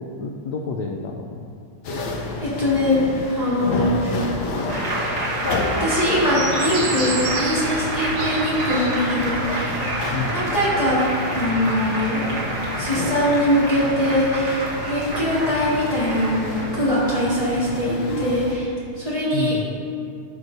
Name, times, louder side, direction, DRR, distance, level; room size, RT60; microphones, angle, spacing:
voice 1, 0.0-1.5 10.1-10.4 19.3-19.7, left 4 dB, 90° left, 1 dB, 0.9 m, -29 dB
sound 1, 1.8-18.5, left 2 dB, 65° left, 1.1 m, -30 dB
voice 2, 2.4-3.1 3.3-4.2 5.8-9.8 10.3-11.0 11.3-12.3 12.8-19.6, left 1 dB, 20° left, -10 dB, 1.7 m, -22 dB
Applause, 4.7-17.7, right 1 dB, 35° right, 1.4 m, -28 dB
sound 2, 6.2-10.5 10.8-11.3 12.2-12.3 14.3-16.5, right 4 dB, 80° right, 1.9 m, -33 dB
13.5 x 6.1 x 2.6 m, 2.3 s
omnidirectional pair, 2.4 m